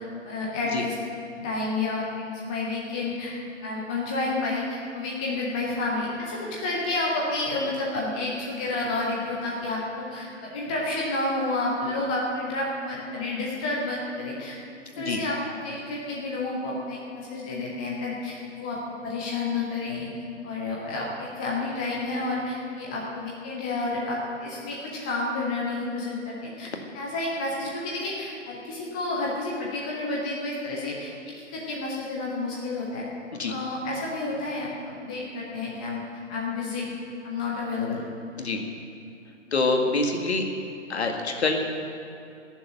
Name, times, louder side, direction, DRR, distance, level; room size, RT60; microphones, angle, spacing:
voice 1, 0.2-1.0 1.4-3.3 3.6-14.6 14.9-20.1 20.4-33.0 33.5-34.7 35.0-36.0 36.3-36.9 37.2-38.1, left 2 dB, 5° left, -3 dB, 0.4 m, -30 dB
voice 2, 39.5-40.4 40.9-41.6, left 3 dB, 60° left, 3 dB, 2.0 m, -25 dB
17.0 x 7.2 x 9.4 m, 2.7 s
figure-of-eight pair, 125°, 37 cm